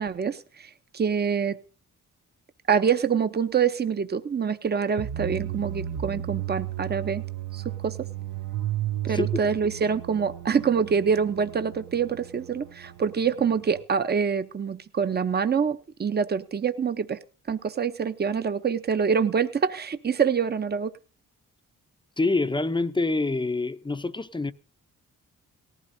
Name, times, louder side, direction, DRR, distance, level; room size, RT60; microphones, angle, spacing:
voice 1, 0.0-1.6 2.7-7.2 7.5-8.0 9.0-17.2 17.5-20.9, right 6 dB, 30° right, 0.7 m, -26 dB
sound 1, 5.0-13.8, right 12 dB, 65° right, 0.8 m, -34 dB
voice 2, 22.2-24.5, left 3 dB, 15° left, 0.6 m, -26 dB
18.5 x 15.0 x 2.7 m
cardioid pair, 100°, 33 cm